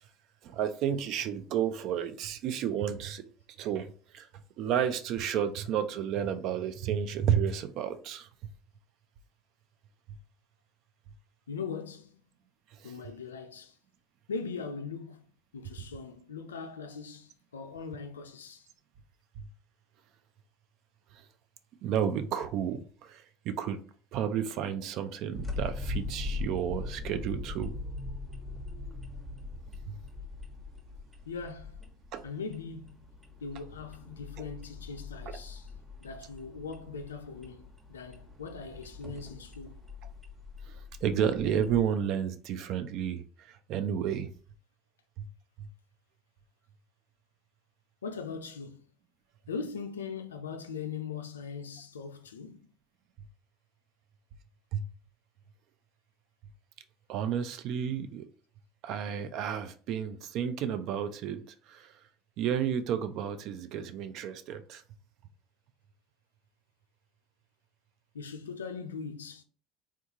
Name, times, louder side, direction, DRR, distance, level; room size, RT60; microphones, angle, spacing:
voice 1, 0.4-3.2 3.6-4.3 4.6-8.3 12.8-12.9 19.4-19.5 21.1-21.2 21.8-23.8 24.1-27.7 29.9-30.0 32.1-32.2 40.7-44.3 45.2-45.3 45.6-45.7 54.7-54.9 57.1-58.2 58.8-61.9 62.4-64.8, right 8 dB, 60° right, 0.4 m, -32 dB
voice 2, 11.5-12.2 12.8-13.8 14.3-15.2 15.5-18.7 31.3-31.8 32.2-33.0 33.4-35.7 36.0-39.8 48.0-48.8 49.5-52.6 68.1-69.4, left 5 dB, 90° left, 0.3 m, -40 dB
sound 1, 25.3-41.8, left 3 dB, 10° right, 1.0 m, -41 dB
3.5 x 2.3 x 2.8 m
hypercardioid pair, 70°, 0 cm